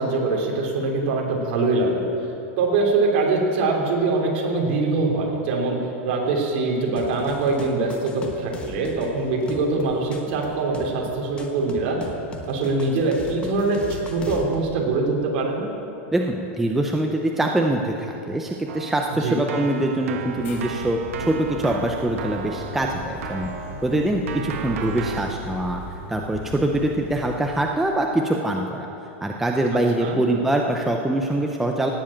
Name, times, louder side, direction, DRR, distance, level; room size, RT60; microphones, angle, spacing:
voice 1, 0.0-2.1 2.6-5.8 6.0-12.0 12.5-15.7 19.2-19.3 29.7-30.2, right 3 dB, 50° right, -1 dB, 3.3 m, -23 dB
sound 1, 7.0-14.5, left 3 dB, 15° left, 1.1 m, -39 dB
voice 2, 16.1-23.5 23.8-25.8 26.1-28.9 29.2-31.9, right 1 dB, 5° right, 1 dB, 0.5 m, -24 dB
Keyboard (musical), 18.7-25.2, right 7 dB, 85° right, 1.3 m, -34 dB
sound 2, 20.3-27.4, left 3 dB, 70° left, 3.8 m, -38 dB
18.0 x 7.5 x 8.6 m, 2.9 s
supercardioid pair, 170°, 7 cm